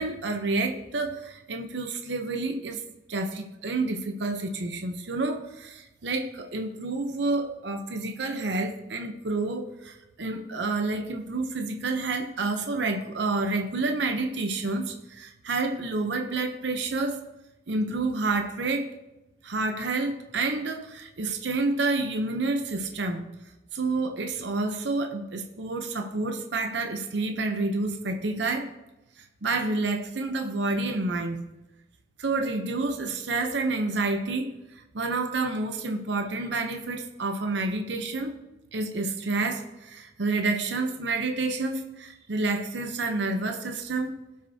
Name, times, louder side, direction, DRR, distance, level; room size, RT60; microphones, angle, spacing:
voice 1, 0.0-2.8 3.1-17.2 17.7-18.9 19.4-23.3 23.7-28.7 29.4-31.4 32.2-34.5 34.9-38.3 38.7-44.1, right 3 dB, 80° right, 5 dB, 0.8 m, -29 dB
16.5 x 6.0 x 2.8 m, 0.99 s
head